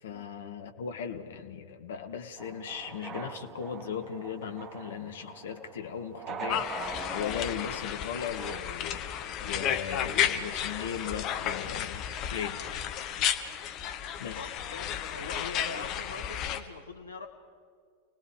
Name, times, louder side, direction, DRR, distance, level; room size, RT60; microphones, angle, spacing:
voice 1, 0.0-6.7 7.1-12.8 14.2-14.5, left 7 dB, 60° left, 6 dB, 1.7 m, -38 dB
sound 1, 2.4-8.6, right 7 dB, 25° right, 0.8 m, -43 dB
sound 2, 6.5-16.6, left 9 dB, 35° left, 1.3 m, -33 dB
voice 2, 14.3-17.3, left 3 dB, 75° left, 4 dB, 1.6 m, -42 dB
29.5 x 19.0 x 4.8 m, 2.2 s
figure-of-eight pair, 90°, 0 cm